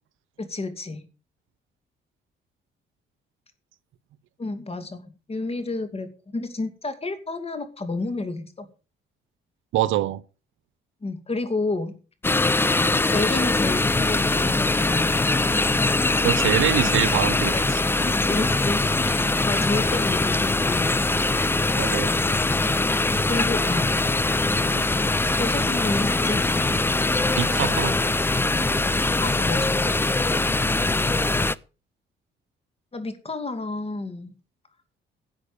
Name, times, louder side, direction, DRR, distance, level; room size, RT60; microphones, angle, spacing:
voice 1, 0.4-1.0 4.4-8.7 11.0-12.0 13.1-15.1 17.5-17.6 18.0-21.1 23.3-23.9 24.7-24.9 25.4-26.9 28.8-28.9 29.2-30.0 32.9-34.3, left 3 dB, 30° left, 2.6 m, -30 dB
voice 2, 9.7-10.2 16.2-17.8 21.8-22.1 27.4-28.0, right 13 dB, 85° right, 0.8 m, -24 dB
sound 1, 12.2-31.5, left 2 dB, 10° left, 0.5 m, -22 dB
11.5 x 7.5 x 7.0 m
cardioid pair, 90°, 20 cm